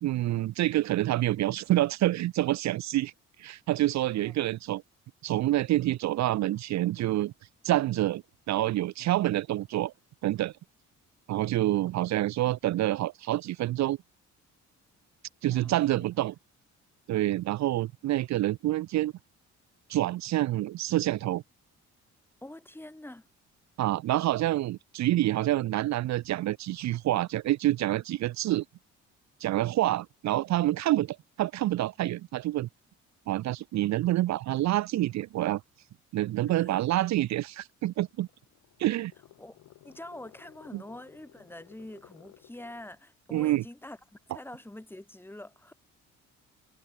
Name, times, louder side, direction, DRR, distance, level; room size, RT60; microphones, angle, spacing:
voice 1, 0.0-3.1 3.4-4.8 5.2-7.3 7.6-9.9 10.2-10.5 11.3-14.0 15.4-16.3 17.1-19.1 19.9-21.4 23.8-28.6 29.4-32.7 33.3-35.6 36.1-38.3 38.8-39.1 40.7-40.8 43.3-43.6, right 15 dB, 65° right, 0.5 m, -27 dB
voice 2, 4.1-4.5 15.5-16.1 22.4-23.3 36.4-36.7 39.4-45.7, left 1 dB, 5° left, 1.7 m, -46 dB
sound 1, 38.1-43.0, left 14 dB, 85° left, 6.8 m, -57 dB
cardioid pair, 90°, 30 cm